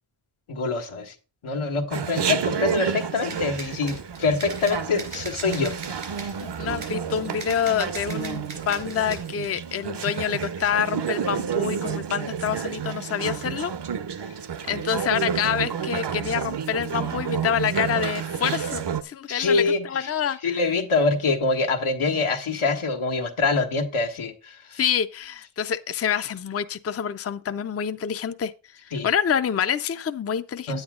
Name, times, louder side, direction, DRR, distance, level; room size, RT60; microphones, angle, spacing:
voice 1, 0.5-1.1 1.4-6.3 19.3-20.1 20.4-24.8 28.9-29.1 30.7-30.8, left 3 dB, 85° left, 1.5 m, -25 dB
Chatter, 1.9-19.0, right 7 dB, 60° right, 0.7 m, -30 dB
sound 1, 3.3-9.5, right 3 dB, 90° right, 3.6 m, -40 dB
voice 2, 6.4-13.7 14.7-20.4 24.7-28.5 29.0-30.8, left 8 dB, 30° left, 0.5 m, -27 dB
9.4 x 8.8 x 3.7 m
wide cardioid pair, 100°, 48 cm